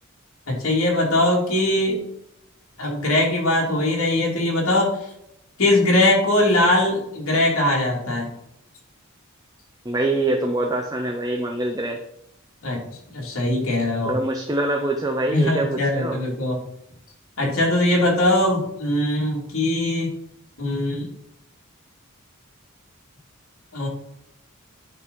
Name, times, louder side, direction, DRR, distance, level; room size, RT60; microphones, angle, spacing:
voice 1, 0.5-2.0 2.8-5.0 5.6-8.3 12.6-12.8 13.1-14.1 15.3-16.6 17.4-20.1 20.6-21.1 23.7-23.9, left 1 dB, 70° left, -2 dB, 3.0 m, -21 dB
voice 2, 9.8-12.0 14.1-16.2, right 2 dB, 15° right, 2 dB, 0.7 m, -24 dB
9.8 x 4.1 x 5.4 m, 0.77 s
head